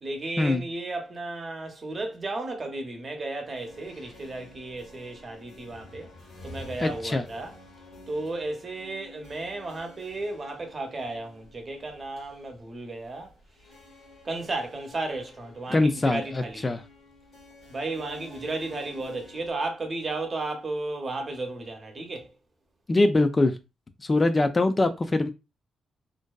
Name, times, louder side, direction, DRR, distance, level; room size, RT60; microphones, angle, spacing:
voice 1, 0.0-6.1 6.4-7.5 8.1-13.3 14.2-16.6 17.7-22.3, right 2 dB, 40° right, 0.7 m, -34 dB
sound 1, 3.4-19.5, left 2 dB, 80° left, 1.1 m, -50 dB
voice 2, 6.8-7.2 15.7-16.8 22.9-23.5 24.0-25.3, left 2 dB, 30° left, 0.4 m, -23 dB
2.6 x 2.2 x 2.2 m
cardioid pair, 70°, 0 cm